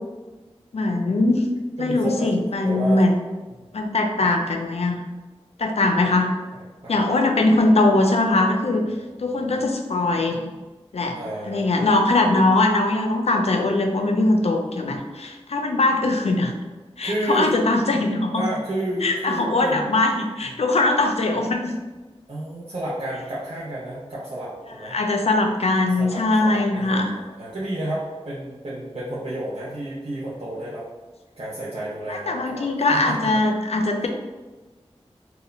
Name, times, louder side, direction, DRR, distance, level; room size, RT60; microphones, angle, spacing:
voice 1, 0.7-1.5 1.8-3.1 3.7-5.0 5.6-6.3 6.9-8.9 9.2-10.5 10.9-11.2 11.5-16.5 17.0-18.4 19.0-21.7 24.9-27.1 32.1-34.1, left 2 dB, 75° left, 3 dB, 0.4 m, -21 dB
voice 2, 1.8-2.3 2.6-3.1 3.5-3.7 6.5-7.1 8.9-9.7 11.1-11.7 16.0-16.1 17.0-17.5 18.3-20.0 20.4-20.6 22.3-25.0 26.0-30.9 31.4-33.4, right 1 dB, 65° right, -9 dB, 0.6 m, -31 dB
2.2 x 2.1 x 3.7 m, 1.2 s
wide cardioid pair, 60°, 11 cm